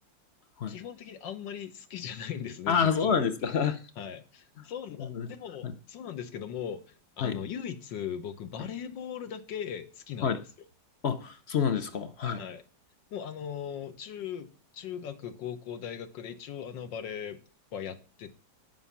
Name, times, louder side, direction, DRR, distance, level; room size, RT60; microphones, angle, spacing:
voice 1, 0.7-3.5 4.0-10.4 12.4-12.6 13.1-17.4 17.7-18.4, left 8 dB, 80° left, 1.7 m, -39 dB
voice 2, 2.7-3.8 4.6-4.7 5.0-5.3 5.6-5.7 7.2-7.4 10.2-10.4 11.0-12.4, left 6 dB, 55° left, 0.7 m, -28 dB
10.5 x 5.6 x 7.1 m
omnidirectional pair, 2.0 m